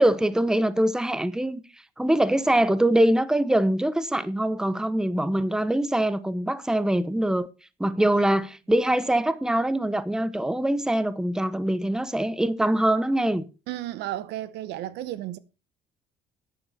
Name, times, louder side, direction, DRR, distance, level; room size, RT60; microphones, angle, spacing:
voice 1, 0.0-1.6 2.0-7.5 7.8-13.4, right 1 dB, 5° right, 0.9 m, -23 dB
voice 2, 13.7-15.4, right 14 dB, 85° right, 0.9 m, -33 dB
11.5 x 10.0 x 4.2 m
cardioid pair, 110°, 17 cm